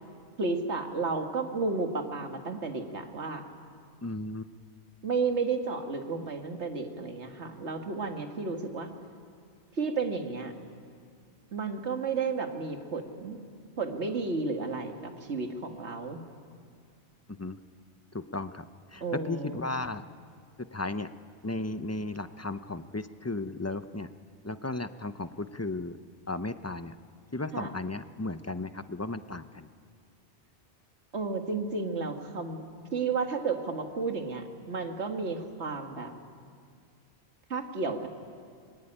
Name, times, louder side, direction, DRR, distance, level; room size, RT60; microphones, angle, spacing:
voice 1, 0.4-3.4 5.0-8.9 9.8-10.5 11.5-13.4 13.8-16.2 19.0-19.7 27.5-27.7 31.1-32.7 32.9-36.1 37.5-38.1, right 4 dB, 65° right, 4 dB, 2.2 m, -32 dB
voice 2, 4.0-4.4 17.4-17.6 18.1-18.6 18.9-20.0 20.7-21.1 21.4-24.1 24.4-26.0 26.3-26.9 27.3-29.7, left 2 dB, 20° left, 11 dB, 0.5 m, -35 dB
25.5 x 21.0 x 10.0 m, 2.2 s
omnidirectional pair, 1.2 m